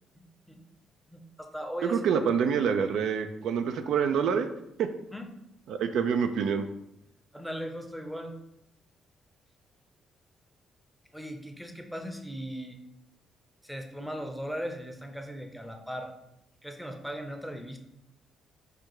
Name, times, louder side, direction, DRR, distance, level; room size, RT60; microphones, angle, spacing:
voice 1, 0.2-0.6 1.1-2.0 5.1-5.3 7.3-8.4 11.1-12.8 13.6-16.1 16.6-17.8, equal, ahead, 4 dB, 0.6 m, -38 dB
voice 2, 1.8-4.5 4.8-4.9 5.7-6.7, right 7 dB, 75° right, 8 dB, 0.4 m, -26 dB
5.0 x 2.2 x 4.6 m, 0.82 s
cardioid pair, 90°, 0 cm